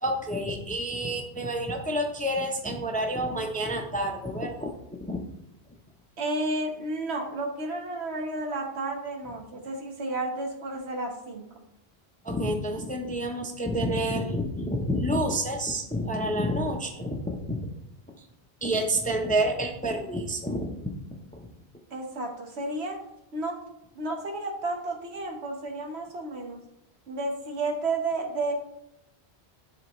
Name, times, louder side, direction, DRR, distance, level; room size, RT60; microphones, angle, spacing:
voice 1, 0.0-4.7 5.0-5.2 12.2-17.6 18.2-18.3 18.6-21.5, right 1 dB, 10° left, 3 dB, 0.5 m, -29 dB
voice 2, 6.2-11.5 21.9-23.0 23.3-23.6 23.9-26.6 27.1-28.5, right 2 dB, 75° right, 2 dB, 1.4 m, -32 dB
10.5 x 4.1 x 3.1 m, 0.83 s
omnidirectional pair, 1.1 m